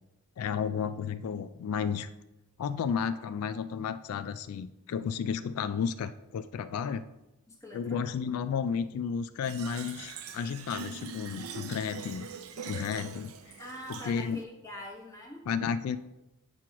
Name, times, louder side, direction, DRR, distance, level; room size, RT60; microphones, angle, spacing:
voice 1, 0.4-2.1 2.6-7.1 7.7-12.3 12.7-13.3 13.9-14.4 15.5-16.0, left 6 dB, 85° left, 12 dB, 0.3 m, -32 dB
voice 2, 7.5-8.0 13.6-15.5, left 1 dB, 15° left, -1 dB, 1.2 m, -44 dB
Fill (with liquid), 9.4-14.4, right 5 dB, 75° right, 0.5 m, -43 dB
7.8 x 3.0 x 5.9 m, 0.96 s
head